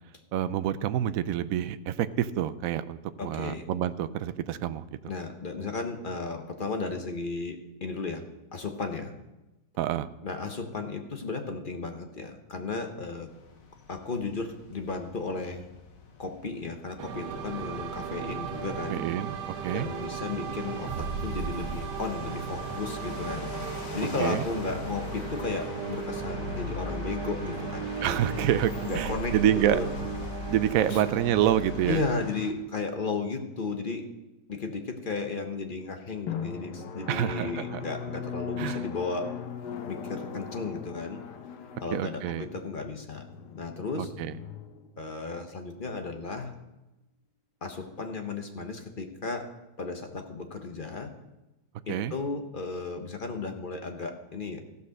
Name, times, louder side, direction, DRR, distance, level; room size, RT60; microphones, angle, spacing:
voice 1, 0.3-4.8 9.8-10.1 18.9-19.3 19.6-19.9 24.2-24.5 28.0-29.8 30.5-32.0 37.1-37.8 38.6-38.8 41.9-42.5 44.0-44.3 51.9-52.1, right 11 dB, 70° right, 12 dB, 0.8 m, -27 dB
voice 2, 3.2-3.6 5.1-8.2 8.5-9.1 10.2-13.3 13.9-15.6 16.2-19.0 19.7-23.5 23.9-28.2 28.8-29.9 30.9-31.0 31.9-34.0 34.5-39.3 39.9-41.2 41.8-43.2 43.5-44.1 45.0-46.5 47.6-49.5 49.8-51.1 51.9-54.6, left 3 dB, 35° left, 5 dB, 0.9 m, -34 dB
sound 1, 13.3-32.5, left 4 dB, 60° left, 1.4 m, -46 dB
sound 2, 17.0-32.0, right 4 dB, 85° right, 1.4 m, -35 dB
Drum, 36.3-45.5, left 8 dB, 75° left, 1.4 m, -39 dB
15.0 x 5.5 x 6.4 m, 1.0 s
omnidirectional pair, 1.8 m